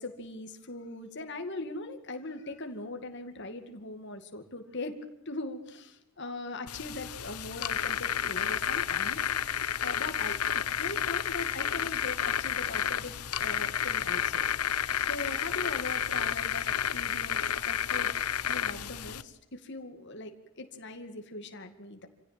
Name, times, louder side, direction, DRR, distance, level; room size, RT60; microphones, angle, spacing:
voice 1, 0.0-5.0 5.3-10.4 10.8-14.5 15.0-18.2 18.5-22.1, left 2 dB, 55° left, 6 dB, 2.3 m, -40 dB
sound 1, 6.7-19.2, left 9 dB, 90° left, 1.0 m, -31 dB
27.0 x 16.5 x 8.9 m, 0.86 s
head